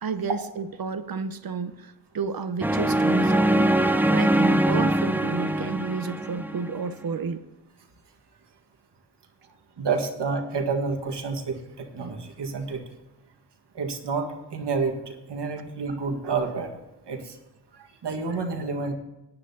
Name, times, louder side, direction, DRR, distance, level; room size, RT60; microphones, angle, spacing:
voice 1, 0.0-3.7 4.1-7.4, right 5 dB, 55° right, 11 dB, 0.9 m, -31 dB
sound 1, 2.6-6.8, right 1 dB, 5° right, 0.6 m, -22 dB
voice 2, 9.8-12.8 13.7-16.7 17.1-17.3 18.0-18.9, right 4 dB, 75° right, 4 dB, 1.7 m, -29 dB
18.5 x 9.8 x 2.8 m, 1.0 s
cardioid pair, 75°, 41 cm